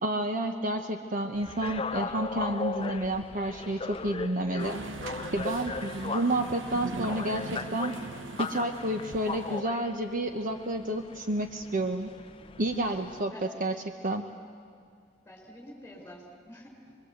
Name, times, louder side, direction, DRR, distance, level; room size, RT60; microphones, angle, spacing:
voice 1, 0.0-4.8 5.3-7.9 8.4-12.1 12.6-13.3 13.6-13.7 14.0-14.2, right 1 dB, 45° right, 5 dB, 1.1 m, -30 dB
sound 1, 1.3-13.2, left 4 dB, 30° left, 0.6 m, -38 dB
sound 2, 4.6-9.6, right 3 dB, 75° right, 1.0 m, -40 dB
voice 2, 12.8-13.5 15.2-17.0, equal, 10° left, 0 dB, 5.0 m, -48 dB
25.5 x 22.0 x 8.1 m, 2.2 s
head